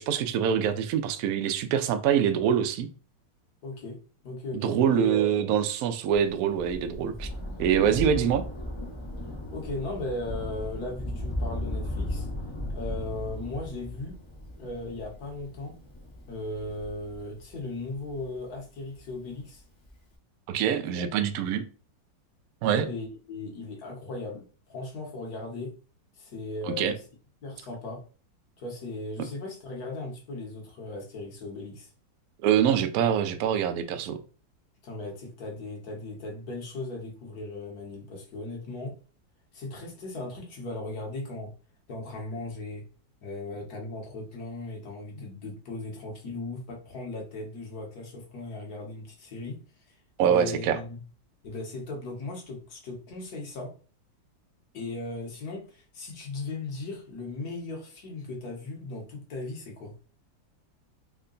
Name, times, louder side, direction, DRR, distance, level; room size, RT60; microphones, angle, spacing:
voice 1, 0.0-2.9 4.5-7.3 7.6-8.4 20.5-21.7 22.6-22.9 26.6-26.9 32.4-34.2 50.2-50.8, right 8 dB, 80° right, 0.8 m, -25 dB
voice 2, 3.6-5.5 9.5-12.3 12.7-14.2 14.6-15.8 16.3-19.6 20.9-21.1 22.7-25.7 26.1-27.0 27.4-28.0 28.6-31.9 34.8-39.0 39.5-41.5 41.9-42.8 43.2-49.6 49.9-51.0 51.4-53.8 54.7-59.9, left 2 dB, 55° left, 1.4 m, -37 dB
Thunder, 6.1-19.0 19.9-20.0, left 1 dB, 25° left, 0.6 m, -36 dB
3.6 x 2.2 x 3.8 m
omnidirectional pair, 2.1 m